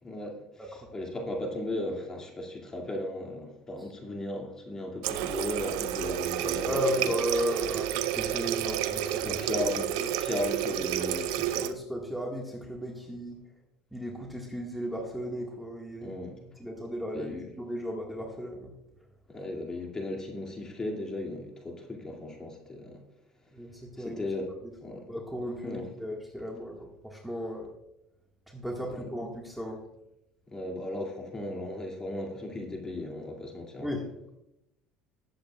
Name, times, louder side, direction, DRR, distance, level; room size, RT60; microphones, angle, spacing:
voice 1, 0.0-0.4 0.9-7.1 9.2-9.9 10.2-11.6 16.0-16.4 17.1-17.5 19.3-23.0 24.0-24.5 24.8-25.1 25.6-25.8 28.9-29.1 30.5-33.9, left 1 dB, 25° left, 1 dB, 2.3 m, -36 dB
Water tap faucet, 5.0-11.7, right 11 dB, 85° right, 0.6 m, -30 dB
voice 2, 6.6-9.7 10.0-10.1 11.6-13.4 13.9-16.2 16.4-18.7 23.5-24.2 24.6-24.7 25.1-27.7 28.5-29.8 33.8-34.1, equal, ahead, -1 dB, 1.6 m, -35 dB
19.5 x 7.7 x 2.3 m, 0.86 s
supercardioid pair, 100°, 3 cm